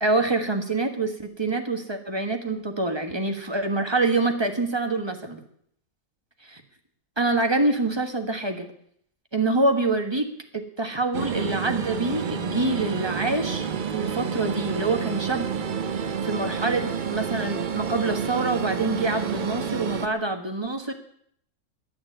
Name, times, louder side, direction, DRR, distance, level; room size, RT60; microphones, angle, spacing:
voice 1, 0.0-5.4 6.5-6.6 7.2-8.7 9.3-10.3 10.5-15.5 16.2-20.9, right 2 dB, 20° right, 5 dB, 1.3 m, -26 dB
sound 1, 11.1-20.1, right 6 dB, 50° right, 0.6 m, -29 dB
11.0 x 9.2 x 9.9 m, 0.68 s
omnidirectional pair, 1.6 m